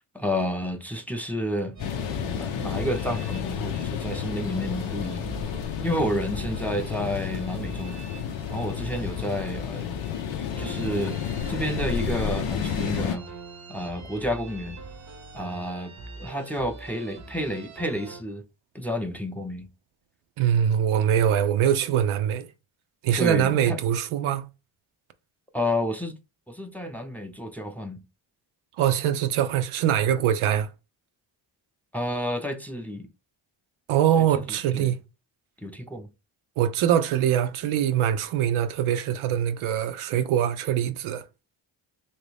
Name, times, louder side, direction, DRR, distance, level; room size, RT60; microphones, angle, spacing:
voice 1, 0.0-1.8 2.2-5.2 5.8-8.0 8.5-10.0 10.6-11.2 11.5-13.2 13.7-14.8 15.3-15.9 16.2-18.4 18.7-19.7 23.2-23.8 25.5-26.1 26.5-28.0 31.9-33.1 34.2-34.3 34.7-34.9 35.6-36.1, equal, 5° left, 0.6 m, -30 dB
sound 1, 1.7-18.2, right 4 dB, 35° right, 0.7 m, -43 dB
sound 2, 1.8-13.2, left 8 dB, 80° left, 0.6 m, -31 dB
voice 2, 20.4-22.5 23.0-24.5 28.8-30.7 33.9-35.0 36.6-41.3, right 10 dB, 80° right, 0.6 m, -23 dB
2.9 x 2.6 x 3.3 m
supercardioid pair, 50°, 49 cm